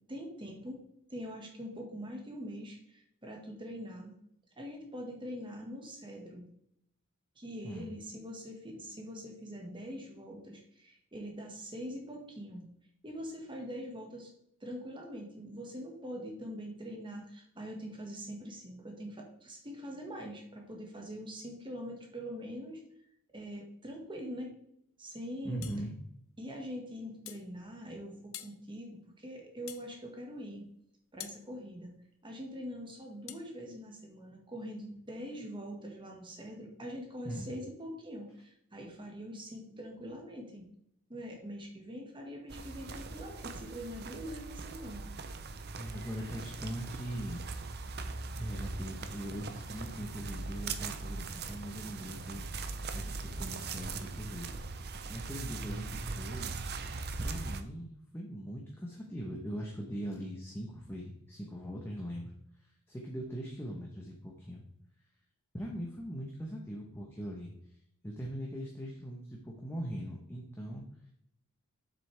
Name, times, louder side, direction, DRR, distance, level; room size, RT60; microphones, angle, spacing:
voice 1, 0.1-0.8 1.1-4.1 4.6-6.4 7.3-12.7 13.0-14.3 14.6-22.8 23.3-24.5 25.0-25.6 26.4-30.6 31.1-31.9 32.2-40.7 41.1-45.1, equal, 20° right, 1 dB, 1.7 m, -43 dB
voice 2, 25.4-25.9 37.2-37.5 45.7-47.4 48.4-52.5 52.9-54.5 55.1-56.5 57.2-64.6 65.5-67.5 68.0-71.1, equal, 10° left, -1 dB, 1.0 m, -41 dB
sound 1, 25.6-25.8 27.3-27.5 28.3-28.6 29.7-29.9 31.2-31.4 33.3-33.5, left 13 dB, 65° left, 0.5 m, -45 dB
sound 2, 42.5-57.6, right 3 dB, 45° right, 0.6 m, -40 dB
7.7 x 6.5 x 3.4 m, 0.73 s
head